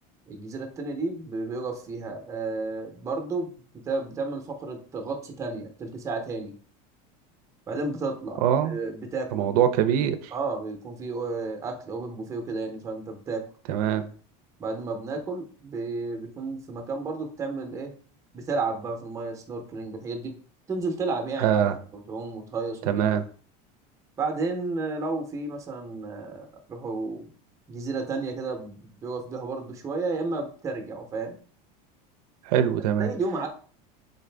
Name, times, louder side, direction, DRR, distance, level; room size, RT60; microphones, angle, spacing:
voice 1, 0.3-3.5 3.8-6.5 7.7-9.5 10.3-13.4 14.6-17.9 18.3-20.3 20.7-23.0 24.2-27.3 27.7-31.4 33.0-33.5, right 3 dB, 15° right, 4 dB, 0.6 m, -32 dB
voice 2, 8.4-8.8 9.3-10.3 13.7-14.0 21.4-21.8 22.9-23.2 32.5-33.1, right 9 dB, 85° right, 10 dB, 0.5 m, -23 dB
3.9 x 2.5 x 3.3 m, 0.43 s
supercardioid pair, 155°, 19 cm